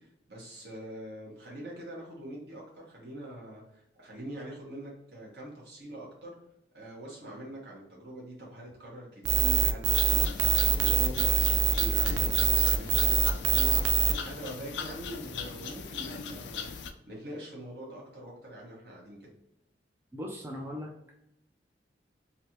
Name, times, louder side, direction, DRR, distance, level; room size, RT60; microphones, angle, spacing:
voice 1, 0.0-6.3 6.7-16.7 17.1-19.3, right 1 dB, 65° right, -3 dB, 1.4 m, -43 dB
sound 1, 9.3-14.1, right 8 dB, 85° right, 0.4 m, -24 dB
sound 2, 9.9-16.9, left 6 dB, 75° left, 0.4 m, -39 dB
voice 2, 20.1-21.1, left 1 dB, 15° right, -2 dB, 0.4 m, -39 dB
3.2 x 2.7 x 2.9 m, 0.83 s
head